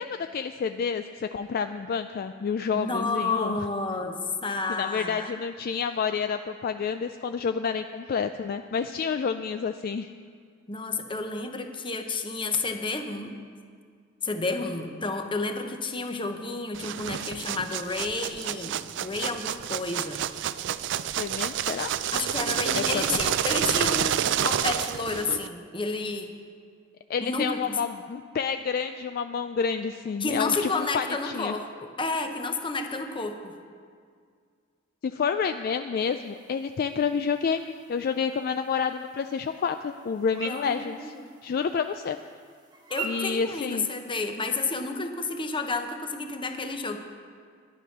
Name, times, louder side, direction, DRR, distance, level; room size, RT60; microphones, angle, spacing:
voice 1, 0.0-3.6 4.7-10.1 21.2-21.9 22.7-23.0 27.1-31.6 35.0-37.6 37.9-41.1 41.4-42.2 43.0-43.9, left 6 dB, 50° left, 8 dB, 0.3 m, -29 dB
voice 2, 2.8-5.3 10.7-13.3 14.2-20.2 22.1-26.3 27.2-27.8 30.2-33.5 40.4-41.2 42.9-47.0, left 3 dB, 25° left, 5 dB, 0.9 m, -31 dB
sound 1, 16.7-25.5, right 10 dB, 60° right, 0.4 m, -29 dB
sound 2, 36.0-44.3, right 4 dB, 20° right, 1.2 m, -44 dB
11.0 x 9.8 x 6.0 m, 2.1 s
head